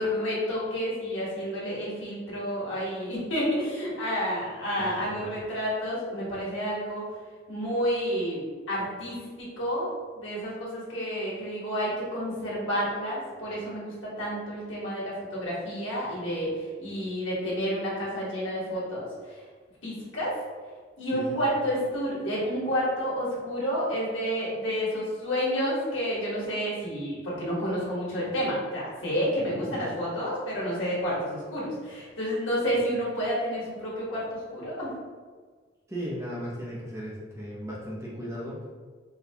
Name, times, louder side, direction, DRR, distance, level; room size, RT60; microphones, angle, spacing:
voice 1, 0.0-7.2 7.5-19.4 19.8-20.3 21.0-34.9, equal, 85° left, -6 dB, 1.3 m, -30 dB
voice 2, 4.8-5.2 21.1-21.5 29.4-29.9 35.9-38.7, equal, 15° right, -6 dB, 0.6 m, -37 dB
4.2 x 2.3 x 2.8 m, 1.5 s
head